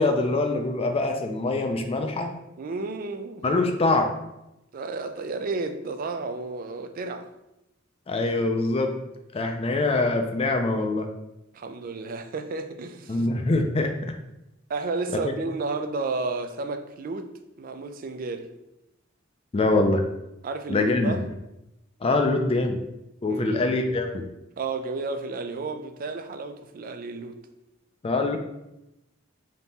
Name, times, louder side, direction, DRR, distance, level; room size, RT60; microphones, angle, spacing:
voice 1, 0.0-2.3 3.4-4.1 8.1-8.9 9.3-11.1 13.1-13.9 19.5-20.0 20.7-21.2 22.0-22.8 23.2-24.2 28.0-28.4, left 2 dB, 30° left, 0.4 m, -24 dB
voice 2, 2.6-3.4 4.7-7.3 11.5-13.2 14.7-17.3 17.6-18.5 20.4-21.2 23.3-23.7 24.6-27.4, right 3 dB, 45° right, 0.3 m, -32 dB
3.6 x 2.8 x 4.0 m
head